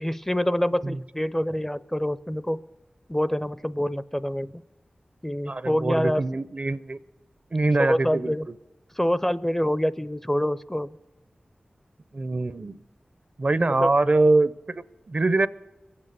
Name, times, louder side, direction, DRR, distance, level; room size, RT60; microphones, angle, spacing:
voice 1, 0.0-2.6 3.1-4.6 5.2-6.2 7.8-8.5 9.0-11.0 13.6-13.9, equal, 10° left, 16 dB, 0.5 m, -26 dB
voice 2, 5.5-7.0 7.5-8.3 12.1-12.8 13.4-15.5, right 2 dB, 50° right, 16 dB, 0.5 m, -23 dB
22.5 x 8.7 x 6.7 m, 1.2 s
wide cardioid pair, 55°, 3 cm